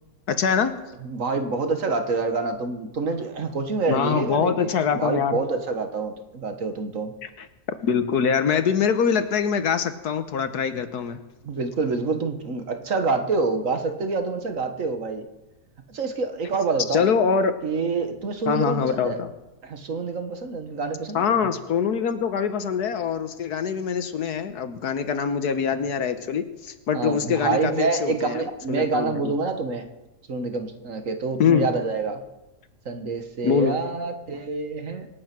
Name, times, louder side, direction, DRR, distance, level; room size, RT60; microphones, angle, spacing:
voice 1, 0.3-0.7 3.9-5.4 7.4-11.2 16.9-17.5 18.5-19.3 21.1-29.3 31.4-31.7 33.4-33.8, left 7 dB, 70° left, 10 dB, 1.5 m, -24 dB
voice 2, 1.0-7.1 11.4-15.3 15.9-17.1 17.6-19.2 19.6-21.5 26.9-29.9 30.3-32.2 32.9-35.1, right 4 dB, 50° right, 6 dB, 1.6 m, -27 dB
25.5 x 8.6 x 6.0 m, 0.99 s
omnidirectional pair, 1.8 m